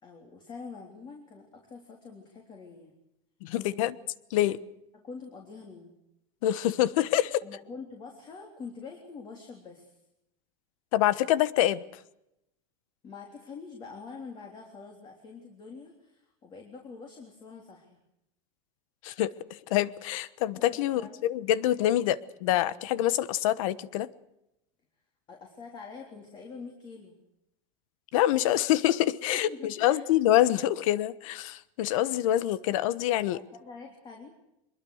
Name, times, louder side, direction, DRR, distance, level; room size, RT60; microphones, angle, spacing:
voice 1, 0.0-2.9 3.5-3.9 4.9-5.9 7.4-10.0 13.0-18.0 20.7-21.3 25.3-27.2 29.3-30.1 33.3-34.3, left 4 dB, 25° left, 2 dB, 3.6 m, -45 dB
voice 2, 3.4-3.9 4.3-4.6 6.4-7.4 10.9-11.8 19.0-24.1 28.1-33.4, left 13 dB, 70° left, 17 dB, 1.2 m, -26 dB
24.5 x 22.0 x 6.5 m, 0.86 s
supercardioid pair, 160°, 18 cm